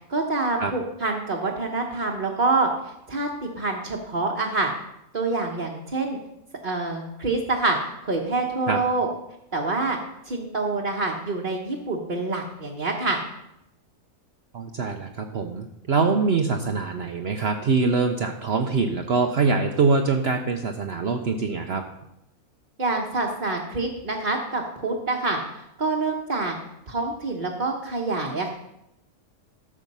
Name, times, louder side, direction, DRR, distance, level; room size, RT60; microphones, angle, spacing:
voice 1, 0.1-4.7 5.1-6.2 6.6-7.8 8.0-9.1 9.5-10.0 10.3-13.2 22.8-26.6 26.9-28.5, right 3 dB, 35° right, -3 dB, 1.2 m, -26 dB
voice 2, 14.5-21.8, right 4 dB, 55° right, 4 dB, 0.9 m, -24 dB
13.5 x 6.5 x 5.4 m, 0.81 s
omnidirectional pair, 1.5 m